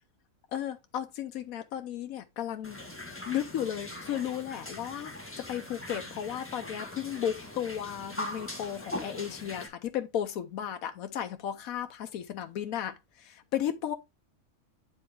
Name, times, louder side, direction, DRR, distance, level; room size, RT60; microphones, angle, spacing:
voice 1, 0.5-2.8 3.3-13.9, left 10 dB, 90° left, 1.2 m, -34 dB
sound 1, 2.6-9.7, left 1 dB, 10° left, 1.5 m, -41 dB
9.5 x 4.3 x 3.5 m
omnidirectional pair, 1.4 m